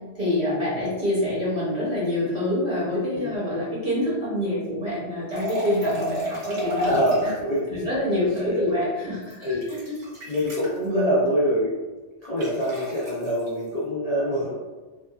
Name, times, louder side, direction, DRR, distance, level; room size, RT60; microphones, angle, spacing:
voice 1, 0.1-6.9 7.7-9.8 10.8-11.1, left 1 dB, 40° right, -8 dB, 0.8 m, -26 dB
sound 1, 5.3-7.4 9.2-10.8 12.4-13.5, right 1 dB, 70° right, 1.3 m, -31 dB
voice 2, 6.8-7.9 9.4-9.7 10.3-11.7 12.2-14.5, equal, 70° left, -7 dB, 0.3 m, -24 dB
2.8 x 2.2 x 2.2 m, 1.2 s
omnidirectional pair, 1.3 m